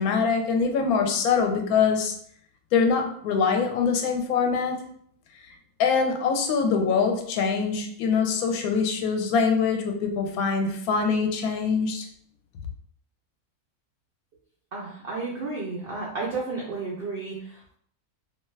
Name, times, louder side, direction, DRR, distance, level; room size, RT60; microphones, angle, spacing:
voice 1, 0.0-2.1 2.7-4.8 5.8-12.1, left 5 dB, 75° left, 4 dB, 1.0 m, -24 dB
voice 2, 14.7-17.8, right 3 dB, 85° right, -3 dB, 0.5 m, -32 dB
2.7 x 2.3 x 3.1 m, 0.63 s
omnidirectional pair, 1.6 m